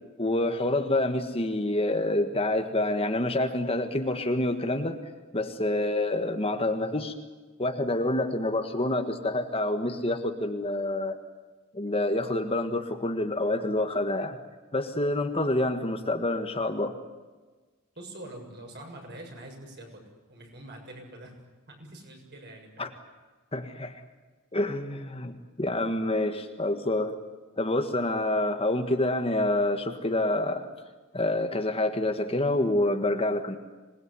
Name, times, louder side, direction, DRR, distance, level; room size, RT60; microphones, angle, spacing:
voice 1, 0.2-5.0 5.3-7.1 7.6-11.2 11.7-14.4 14.7-16.9 22.8-22.9 23.5-24.0 24.5-27.1 27.6-30.6 31.1-33.6, left 1 dB, 25° left, 6 dB, 1.6 m, -27 dB
voice 2, 18.0-20.0 20.3-21.4 21.7-22.9, right 1 dB, 50° right, 2 dB, 7.0 m, -44 dB
26.5 x 20.0 x 9.8 m, 1.3 s
head